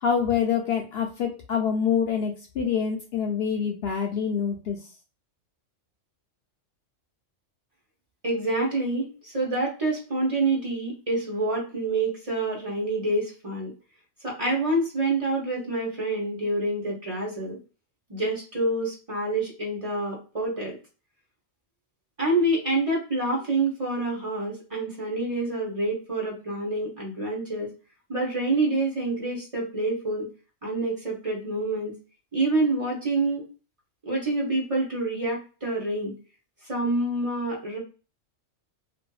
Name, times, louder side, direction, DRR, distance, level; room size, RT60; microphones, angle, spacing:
voice 1, 0.0-4.8, left 7 dB, 65° left, 1 dB, 0.7 m, -26 dB
voice 2, 8.2-13.7 14.2-17.6 18.1-20.8 22.2-27.7 28.1-30.3 30.6-31.9 32.3-33.5 34.0-36.1 36.6-37.8, right 2 dB, 30° right, -3 dB, 0.9 m, -27 dB
2.7 x 2.5 x 2.2 m, 0.34 s
omnidirectional pair, 1.3 m